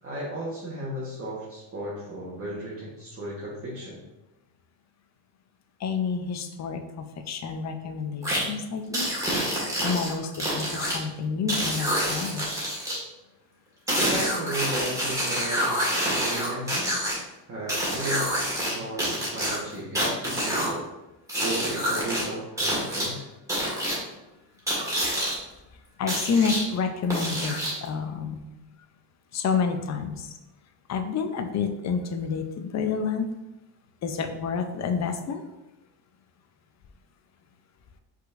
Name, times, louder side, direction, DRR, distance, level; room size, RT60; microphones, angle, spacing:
voice 1, 0.0-4.0 14.1-15.7 16.1-16.9 17.5-20.8 21.4-23.3, right 1 dB, 30° right, -7 dB, 1.1 m, -35 dB
voice 2, 5.8-9.1 9.8-12.5 26.0-28.4 29.3-30.3 30.9-33.3 34.0-35.4, left 5 dB, 40° left, 7 dB, 0.5 m, -29 dB
sound 1, 8.2-8.4 8.9-11.0 11.5-13.0 13.9-17.1 17.7-18.7 19.0-20.7 21.3-22.2 22.6-23.1 23.5-24.0 24.7-25.3 26.1-26.6 27.1-27.9, equal, 5° right, 1.6 m, -27 dB
5.4 x 3.9 x 2.5 m, 0.96 s
cardioid pair, 140°, 45 cm